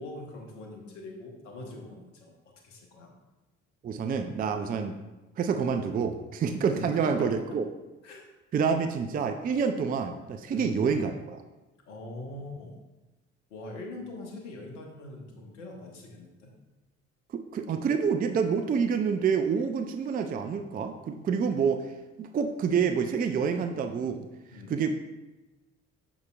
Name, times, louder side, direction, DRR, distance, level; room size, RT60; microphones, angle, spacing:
voice 1, 0.0-2.3 2.6-3.1 6.7-7.3 8.0-8.2 10.5-10.8 11.9-12.8 13.5-16.5 24.5-24.9, left 2 dB, 75° left, 1 dB, 1.1 m, -42 dB
voice 2, 3.8-5.0 5.4-7.6 8.5-11.4 17.5-21.9 22.2-24.3 24.7-24.9, right 6 dB, 25° right, 7 dB, 0.4 m, -27 dB
6.9 x 6.5 x 2.4 m, 1.1 s
figure-of-eight pair, 45°, 37 cm